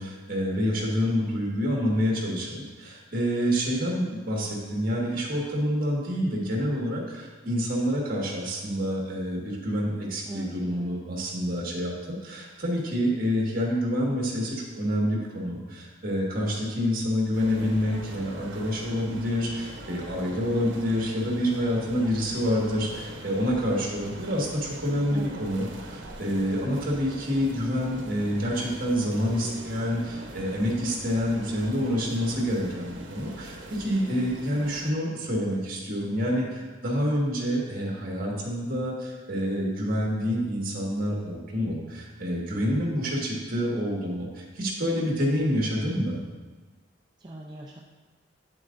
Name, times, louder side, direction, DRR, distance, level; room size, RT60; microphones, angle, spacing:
voice 1, 0.0-46.2, equal, 50° right, -2 dB, 1.6 m, -27 dB
voice 2, 10.3-11.0 25.1-25.4 47.2-47.8, right 1 dB, 25° right, -3 dB, 0.5 m, -41 dB
sound 1, 17.3-34.9, right 1 dB, 85° right, 0.9 m, -42 dB
8.8 x 7.7 x 2.5 m, 1.3 s
head